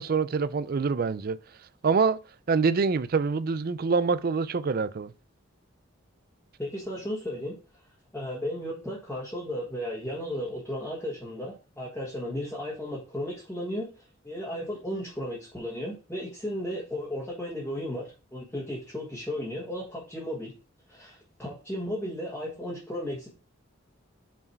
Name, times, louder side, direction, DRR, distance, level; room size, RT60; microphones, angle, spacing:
voice 1, 0.0-1.4 1.8-2.2 2.5-5.1, right 5 dB, 45° right, 0.4 m, -25 dB
voice 2, 6.6-7.6 8.1-13.9 14.2-20.5 20.9-23.3, equal, 10° left, 1.6 m, -34 dB
5.7 x 4.8 x 4.5 m
head